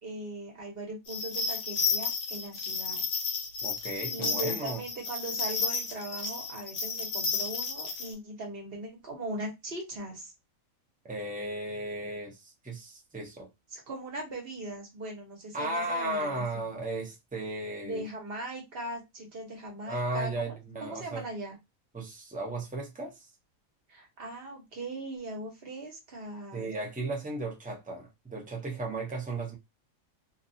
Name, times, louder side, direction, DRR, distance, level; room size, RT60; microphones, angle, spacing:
voice 1, 0.0-3.0 4.1-10.3 13.7-16.6 17.8-21.5 23.9-26.7, right 1 dB, 50° right, 1.1 m, -39 dB
sound 1, 1.1-8.1, left 5 dB, 80° left, 1.1 m, -32 dB
voice 2, 3.6-4.8 11.0-13.5 15.5-18.0 19.9-21.2 21.9-23.3 26.5-29.6, right 2 dB, 10° right, 0.3 m, -35 dB
2.6 x 2.3 x 2.6 m
omnidirectional pair, 1.4 m